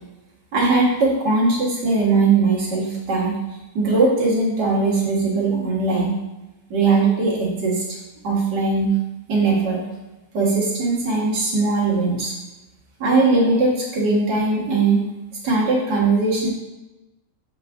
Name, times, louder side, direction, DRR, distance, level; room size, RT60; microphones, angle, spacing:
voice 1, 0.5-3.4 3.8-6.2 6.7-8.0 8.2-8.9 9.3-9.9 10.3-12.3 13.0-15.0 15.4-16.5, right 3 dB, 80° right, -4 dB, 2.1 m, -20 dB
6.7 x 4.9 x 3.5 m, 1.0 s
omnidirectional pair, 1.8 m